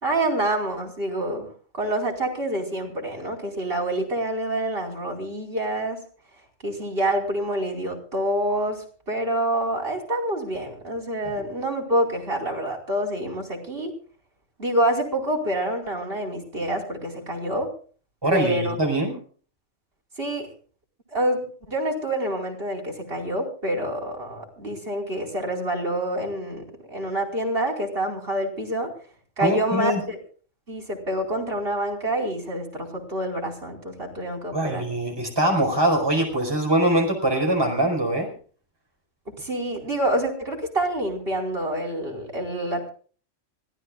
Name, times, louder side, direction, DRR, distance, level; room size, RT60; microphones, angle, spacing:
voice 1, 0.0-1.5 1.7-6.0 6.6-13.9 14.6-17.7 18.3-18.8 20.2-20.5 21.1-28.9 29.4-30.2 30.7-34.9 39.4-42.9, right 1 dB, 45° right, 1 dB, 5.0 m, -27 dB
voice 2, 18.2-19.1 29.4-30.0 34.5-38.3, right 1 dB, 20° right, 2 dB, 5.0 m, -23 dB
25.0 x 17.0 x 2.5 m, 0.42 s
omnidirectional pair, 1.3 m